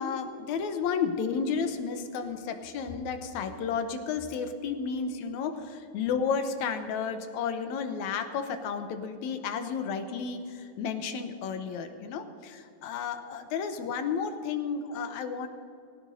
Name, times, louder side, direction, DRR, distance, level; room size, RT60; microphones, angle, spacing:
voice 1, 0.0-15.5, left 6 dB, 80° left, 8 dB, 2.1 m, -32 dB
19.5 x 17.0 x 2.7 m, 2.6 s
omnidirectional pair, 3.4 m